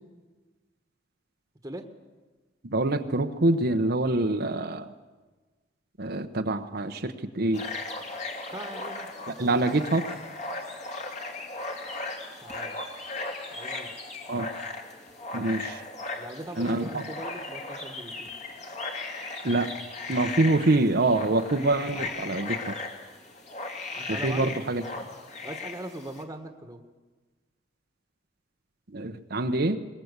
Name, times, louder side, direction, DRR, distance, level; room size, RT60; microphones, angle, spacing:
voice 1, 2.6-4.9 6.0-7.6 9.4-10.1 14.3-14.5 15.3-15.8 16.6-17.0 19.4-19.7 20.1-22.8 24.1-24.8 28.9-29.8, right 2 dB, 60° right, 7 dB, 1.0 m, -25 dB
sound 1, 7.5-26.2, left 3 dB, 40° left, 2.8 m, -37 dB
voice 2, 8.5-9.1 12.4-12.8 13.5-13.9 16.2-18.3 23.9-25.2 25.4-26.8, right 1 dB, 20° right, 5 dB, 1.6 m, -40 dB
21.0 x 21.0 x 8.2 m, 1.3 s
head